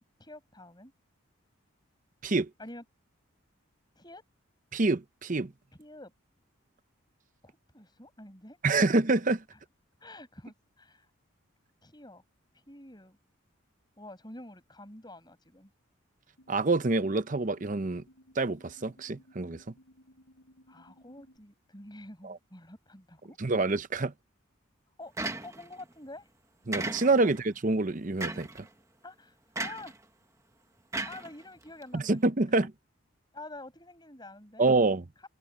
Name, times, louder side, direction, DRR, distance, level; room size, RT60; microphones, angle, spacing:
voice 1, 0.2-0.9 2.6-2.8 4.0-4.2 5.8-6.1 7.4-9.0 9.5-9.6 10.0-11.1 11.8-12.2 12.5-13.2 14.0-15.7 20.7-23.4 24.9-26.3 29.0-29.9 31.1-32.2 32.5-32.7 33.3-34.7, left 2 dB, 20° left, 7.7 m, -48 dB
voice 2, 4.7-5.5 8.6-9.4 16.5-18.0 18.4-19.6 22.2-22.4 23.4-24.1 26.7-28.5 31.9-32.7 34.6-35.0, right 3 dB, 40° right, 0.8 m, -26 dB
sound 1, 16.4-21.4, equal, 80° left, 7.9 m, -59 dB
sound 2, 25.2-25.8 26.7-27.4 28.2-28.6 29.6-30.0 30.9-31.8, right 2 dB, 15° right, 1.3 m, -35 dB
head